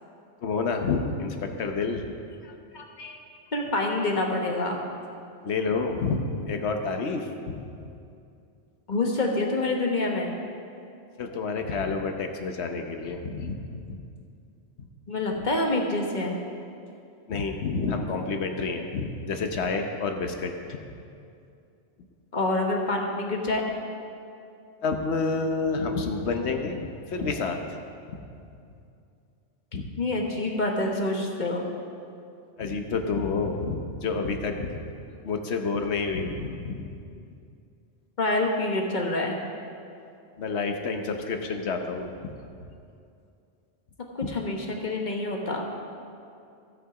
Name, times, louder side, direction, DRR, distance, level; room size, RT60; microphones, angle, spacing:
voice 1, 0.4-2.1 2.4-2.5 5.4-7.7 11.2-14.0 14.8-14.9 15.3-15.4 17.3-20.8 24.8-27.7 28.1-28.3 29.7-29.9 32.6-34.9 35.2-36.9 40.4-42.3 44.2-44.3, left 4 dB, 65° left, 5 dB, 1.2 m, -29 dB
voice 2, 2.7-3.2 3.5-4.8 8.9-10.3 15.1-16.3 22.3-23.6 30.0-31.7 38.2-39.4 44.1-45.6, left 2 dB, 40° left, 1 dB, 1.3 m, -27 dB
15.5 x 6.6 x 4.9 m, 2.5 s
omnidirectional pair, 1.2 m